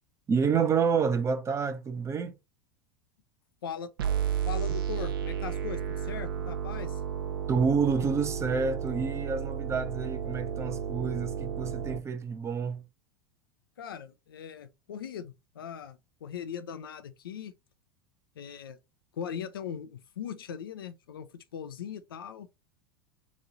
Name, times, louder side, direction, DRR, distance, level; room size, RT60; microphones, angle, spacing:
voice 1, 0.3-2.3 7.5-12.8, right 5 dB, 25° right, 0.6 m, -28 dB
sound 1, 4.0-12.0, right 8 dB, 75° right, 0.6 m, -32 dB
voice 2, 4.5-7.0 13.8-17.5 18.4-18.8 19.1-22.5, left 8 dB, 80° left, 0.5 m, -40 dB
3.0 x 2.7 x 3.8 m
hypercardioid pair, 85°, 12 cm